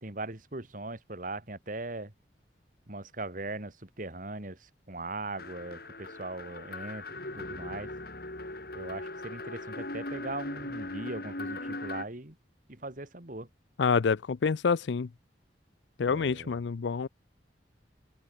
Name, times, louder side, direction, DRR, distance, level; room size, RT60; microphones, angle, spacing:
voice 1, 0.0-2.1 2.9-7.0 7.3-7.9 8.7-12.4 12.7-13.5 16.1-16.5, right 2 dB, 50° right, 2.5 m, -39 dB
sound 1, 5.4-12.1, left 2 dB, 60° left, 4.7 m, -39 dB
voice 2, 13.8-15.1 16.0-17.1, left 5 dB, 90° left, 0.5 m, -27 dB
open air
head